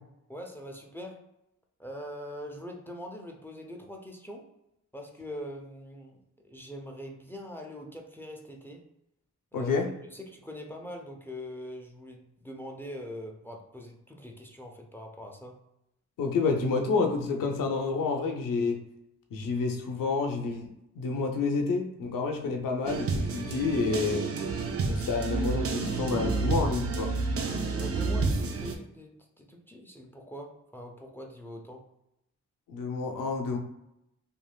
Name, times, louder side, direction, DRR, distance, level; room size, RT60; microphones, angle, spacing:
voice 1, 0.3-1.2 1.8-4.5 4.9-8.8 9.5-15.6 25.0-25.2 27.7-31.8, equal, 5° left, 1 dB, 0.6 m, -43 dB
voice 2, 9.5-9.9 16.2-18.8 19.3-24.3 24.9-27.1 32.7-33.6, left 4 dB, 90° left, 3 dB, 0.6 m, -29 dB
sound 1, 22.8-28.7, right 3 dB, 45° right, 0.5 m, -30 dB
3.2 x 2.5 x 2.2 m, 0.84 s
cardioid pair, 55°, 32 cm